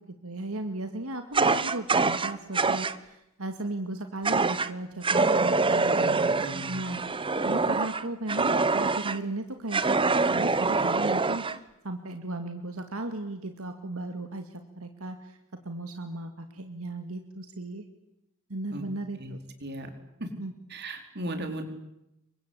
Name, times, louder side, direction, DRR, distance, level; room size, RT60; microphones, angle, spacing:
voice 1, 0.0-17.8 18.5-19.4 20.4-20.5, right 2 dB, 80° right, 7 dB, 2.3 m, -36 dB
Fire, 1.3-3.0 4.2-4.7 5.0-9.2 9.7-11.6, right 3 dB, 25° right, 1.0 m, -25 dB
voice 2, 5.8-6.7 18.7-18.8 19.2-19.3 19.6-19.9 20.2-20.3 20.7-21.6, right 1 dB, 50° right, 7 dB, 4.6 m, -36 dB
29.0 x 24.0 x 8.5 m, 0.85 s
head